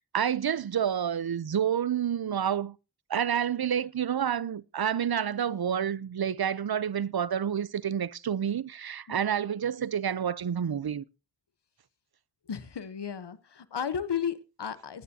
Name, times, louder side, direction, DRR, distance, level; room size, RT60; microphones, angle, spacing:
voice 1, 0.0-2.8 3.1-11.0, right 8 dB, 65° right, 0.6 m, -29 dB
voice 2, 12.5-15.0, left 7 dB, 75° left, 1.0 m, -34 dB
20.5 x 9.4 x 2.8 m
wide cardioid pair, 40°, 41 cm